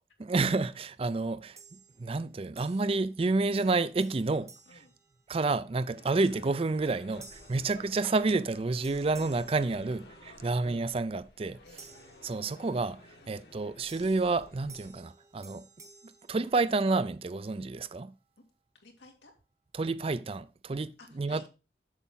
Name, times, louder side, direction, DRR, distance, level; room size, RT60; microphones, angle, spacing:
voice 1, 0.2-1.6 2.0-4.8 5.3-11.6 12.2-15.7 16.3-18.1 19.7-21.5, right 3 dB, 35° right, 0.4 m, -29 dB
sound 1, 1.6-2.2 2.6-3.3 3.6-5.7 6.2-6.5 7.2-8.5 8.8-10.5 11.8-12.9 13.9-17.1, right 4 dB, 15° right, 0.9 m, -55 dB
voice 2, 4.3-4.9 5.9-6.1 7.5-7.7 9.9-10.6 11.6-11.9 13.2-13.3 18.7-19.3 21.0-21.5, left 2 dB, 90° left, 2.3 m, -56 dB
sound 2, 5.9-14.9, left 2 dB, 65° left, 1.7 m, -54 dB
8.1 x 7.2 x 3.8 m
head